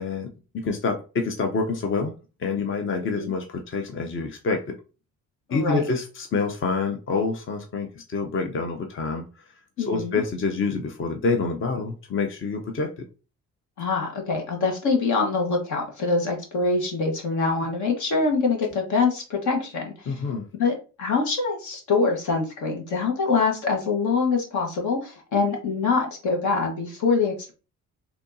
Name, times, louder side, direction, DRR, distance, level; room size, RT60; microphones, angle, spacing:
voice 1, 0.0-2.1 2.4-4.8 5.5-9.2 9.9-13.0 20.1-20.4, left 4 dB, 40° left, 4 dB, 0.7 m, -27 dB
voice 2, 5.5-5.8 9.8-10.2 13.8-20.2 20.6-27.5, left 4 dB, 75° left, 2 dB, 1.5 m, -24 dB
4.3 x 2.9 x 2.7 m, 0.33 s
cardioid pair, 90°, 30 cm